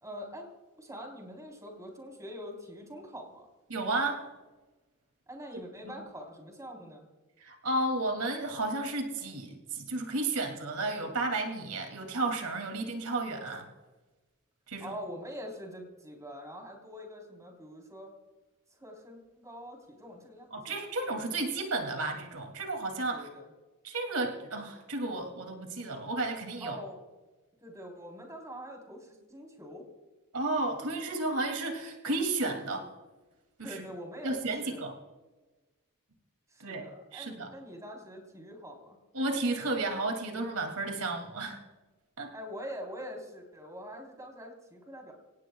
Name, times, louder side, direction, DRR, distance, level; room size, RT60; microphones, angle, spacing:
voice 1, 0.0-0.5 0.8-3.5 5.3-7.1 14.8-18.1 18.7-20.8 23.1-23.5 26.6-27.0 27.6-29.9 33.6-34.9 36.5-39.0 42.3-45.1, equal, 15° right, 1 dB, 3.7 m, -44 dB
voice 2, 3.7-4.2 5.8-5.9 7.4-13.6 14.7-14.9 20.5-23.3 23.8-26.8 30.3-32.9 33.6-33.8 34.2-34.9 36.6-36.8 37.1-37.5 39.1-41.6 42.2-42.3, right 2 dB, 85° right, 4 dB, 2.6 m, -32 dB
26.0 x 17.5 x 2.3 m, 1.2 s
head